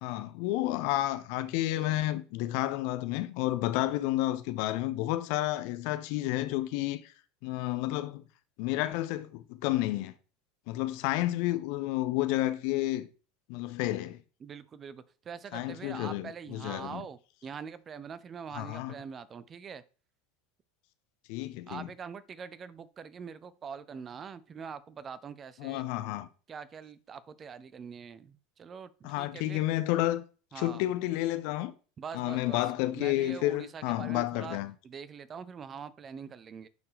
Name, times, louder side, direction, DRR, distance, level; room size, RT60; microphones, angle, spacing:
voice 1, 0.0-7.1 7.4-8.2 8.6-10.1 10.7-13.1 13.5-14.2 15.5-17.0 18.5-19.0 21.3-21.9 25.6-26.3 29.0-30.2 30.5-31.7 32.1-34.7, left 16 dB, 50° left, 0.5 m, -31 dB
voice 2, 14.4-19.8 21.7-25.8 26.5-29.6 30.5-30.8 32.0-32.6 32.9-34.6 34.8-36.7, right 6 dB, 30° right, 0.6 m, -43 dB
9.4 x 4.4 x 3.2 m
figure-of-eight pair, 75°, 0 cm